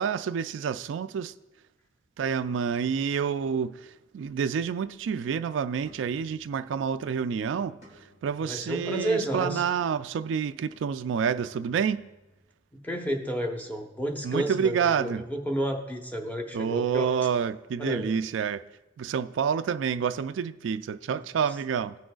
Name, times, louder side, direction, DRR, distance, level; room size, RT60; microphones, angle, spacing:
voice 1, 0.0-1.3 2.2-12.0 14.2-15.2 16.5-18.6 19.0-22.0, right 7 dB, 85° right, 0.3 m, -28 dB
sound 1, 4.2-12.4, equal, 40° left, 2.8 m, -59 dB
voice 2, 8.4-9.6 12.7-17.1 17.8-18.2, right 1 dB, 10° left, 0.9 m, -31 dB
18.5 x 6.2 x 2.3 m
head